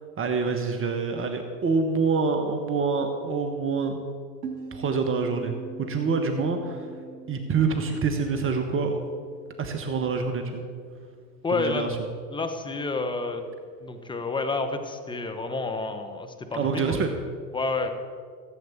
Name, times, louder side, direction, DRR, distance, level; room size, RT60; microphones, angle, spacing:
voice 1, 0.0-4.0 4.7-6.9 7.3-9.0 9.6-10.6 11.5-12.0 16.5-17.1, right 4 dB, 25° right, 5 dB, 1.3 m, -26 dB
sound 1, 4.4-9.8, right 5 dB, 80° right, 2.3 m, -42 dB
voice 2, 11.4-11.8 12.3-13.5 13.8-16.8 17.5-17.9, left 3 dB, 10° left, 6 dB, 1.3 m, -29 dB
15.5 x 8.1 x 7.3 m, 2.1 s
hypercardioid pair, 105°, 50 cm